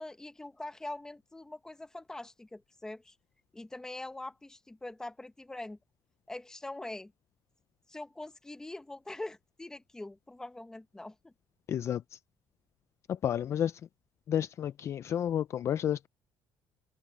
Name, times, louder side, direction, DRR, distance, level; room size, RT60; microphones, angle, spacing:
voice 1, 0.0-3.1 3.5-5.8 6.3-7.1 7.9-11.3, left 2 dB, 5° left, 1.0 m, -43 dB
voice 2, 11.7-12.2 13.1-13.8 14.3-16.1, left 10 dB, 35° left, 0.3 m, -31 dB
cardioid pair, 180°, 8 cm